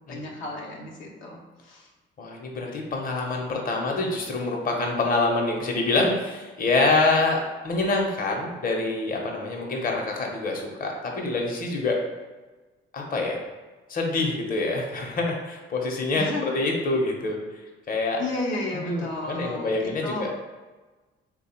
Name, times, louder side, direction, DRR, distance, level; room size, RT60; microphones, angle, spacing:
voice 1, 0.1-1.9 16.1-16.6 18.2-20.3, left 2 dB, 80° left, -2 dB, 0.7 m, -33 dB
voice 2, 2.2-12.0 12.9-13.4 13.9-17.4 17.9-18.2 18.8-20.3, left 3 dB, 45° left, 0 dB, 0.8 m, -26 dB
3.3 x 2.2 x 4.3 m, 1.3 s
cardioid pair, 90°, 20 cm